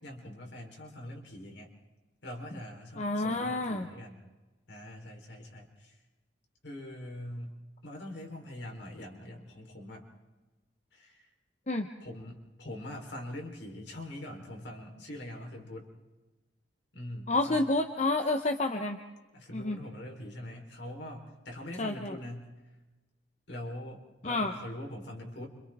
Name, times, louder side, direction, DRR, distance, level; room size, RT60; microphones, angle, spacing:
voice 1, 0.0-1.7 2.2-4.2 4.7-6.0 6.6-10.1 10.9-11.3 12.0-15.9 16.9-17.6 19.3-22.5 23.5-25.5, left 1 dB, 65° left, 1 dB, 4.1 m, -43 dB
voice 2, 3.0-3.9 11.7-11.9 17.3-19.0 19.5-19.8 21.8-22.2 24.2-24.6, left 2 dB, 35° left, 5 dB, 1.0 m, -29 dB
29.5 x 26.5 x 3.7 m, 1.2 s
head